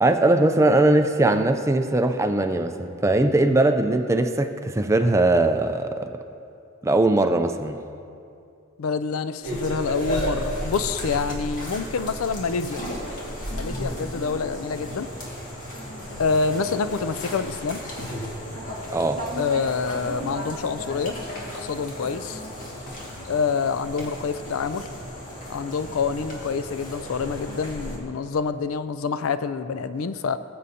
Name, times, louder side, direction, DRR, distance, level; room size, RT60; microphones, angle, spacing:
voice 1, 0.0-6.1 6.8-7.8 18.9-19.3, right 2 dB, 15° right, 7 dB, 0.4 m, -20 dB
voice 2, 8.8-12.8 13.5-15.1 16.2-17.8 19.4-21.1 21.5-22.4 23.3-24.9 25.5-30.4, left 5 dB, 90° left, 12 dB, 0.4 m, -27 dB
sound 1, 9.4-28.0, equal, 40° left, 1.9 m, -34 dB
20.0 x 7.8 x 2.8 m, 2.5 s
head